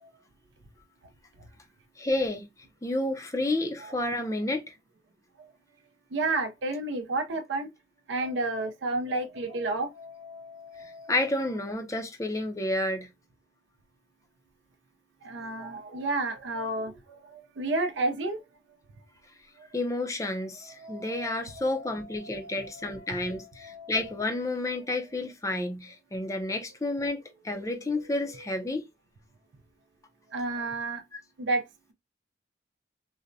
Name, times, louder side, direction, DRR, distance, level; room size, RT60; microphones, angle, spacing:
voice 1, 2.0-2.4 2.8-4.7 11.1-13.1 19.7-28.8, left 2 dB, 15° left, 0.5 m, -30 dB
voice 2, 6.1-7.7 8.1-11.1 15.2-18.4 20.8-23.1 23.6-23.9 30.3-31.0 31.4-31.6, right 2 dB, 75° right, 0.5 m, -32 dB
3.9 x 2.1 x 2.5 m
head